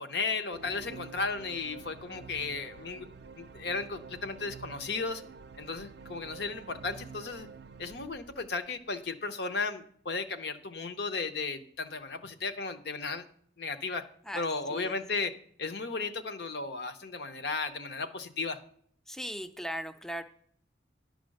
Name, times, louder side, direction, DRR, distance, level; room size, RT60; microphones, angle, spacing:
voice 1, 0.0-3.1 3.4-5.2 5.6-7.5 7.8-13.2 13.6-14.1 14.3-18.6, left 4 dB, 65° left, 8 dB, 0.7 m, -35 dB
sound 1, 0.5-9.0, right 4 dB, 65° right, 0.4 m, -48 dB
voice 2, 19.1-20.2, equal, 5° left, 8 dB, 0.4 m, -38 dB
11.0 x 5.0 x 6.4 m, 0.63 s
head